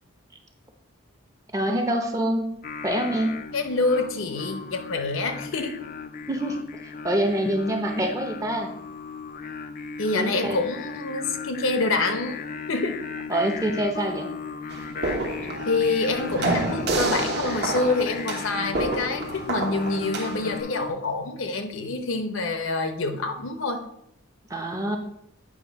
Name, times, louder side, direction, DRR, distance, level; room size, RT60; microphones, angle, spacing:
voice 1, 1.5-2.5 2.8-3.3 6.3-6.6 7.0-8.7 10.1-10.6 13.3-14.3 24.5-25.0, right 1 dB, 15° right, 3 dB, 0.7 m, -25 dB
Singing, 2.6-20.9, left 5 dB, 40° left, 0.3 m, -37 dB
voice 2, 3.5-5.8 10.0-12.4 12.7-13.0 15.7-23.8, left 3 dB, 70° left, 6 dB, 0.8 m, -26 dB
sound 1, 14.7-20.6, right 2 dB, 50° right, 0.9 m, -29 dB
8.7 x 3.1 x 5.2 m, 0.76 s
head